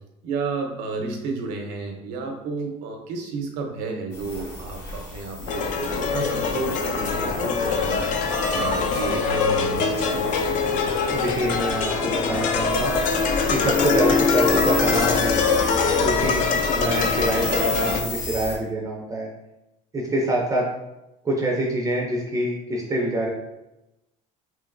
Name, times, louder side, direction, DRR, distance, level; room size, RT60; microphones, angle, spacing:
voice 1, 0.2-5.7 6.0-8.0 8.5-10.4, right 4 dB, 75° right, 2 dB, 0.7 m, -31 dB
sound 1, 4.1-18.6, left 1 dB, 75° left, 1.3 m, -32 dB
sound 2, 5.5-18.0, left 5 dB, 50° left, 0.4 m, -23 dB
voice 2, 11.1-12.9 13.5-15.4 16.0-16.4 16.7-19.3 19.9-20.7 21.2-23.3, right 1 dB, 20° right, -2 dB, 0.5 m, -25 dB
3.1 x 2.8 x 2.5 m, 0.95 s
cardioid pair, 115°, 17 cm